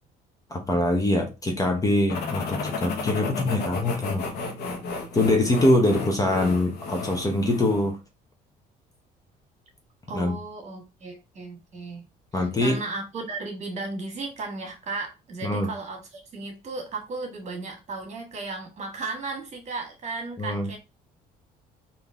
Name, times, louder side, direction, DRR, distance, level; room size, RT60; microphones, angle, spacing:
voice 1, 0.5-4.3 5.1-8.0 10.1-10.3 12.3-12.8 15.4-15.7 20.4-20.7, left 1 dB, 20° left, 0.9 m, -23 dB
sound 1, 2.1-7.9, left 4 dB, 70° left, 1.1 m, -33 dB
voice 2, 10.1-12.1 12.3-20.8, right 3 dB, 40° right, 1.6 m, -35 dB
3.8 x 2.8 x 3.5 m
cardioid pair, 110°, 17 cm